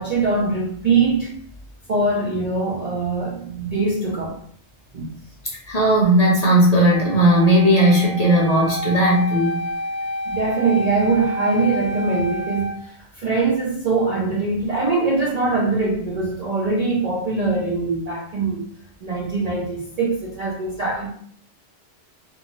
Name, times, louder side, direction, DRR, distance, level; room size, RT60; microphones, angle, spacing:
voice 1, 0.0-1.4 1.9-4.4 4.9-5.1 10.3-18.6 19.0-21.1, right 3 dB, 55° right, -4 dB, 0.4 m, -22 dB
voice 2, 5.7-9.6, right 1 dB, 45° left, -5 dB, 0.6 m, -16 dB
Wind instrument woodwind instrument, 6.8-12.8, equal, 70° left, 1.0 m, -29 dB
2.6 x 2.3 x 2.9 m, 0.63 s
omnidirectional pair, 1.2 m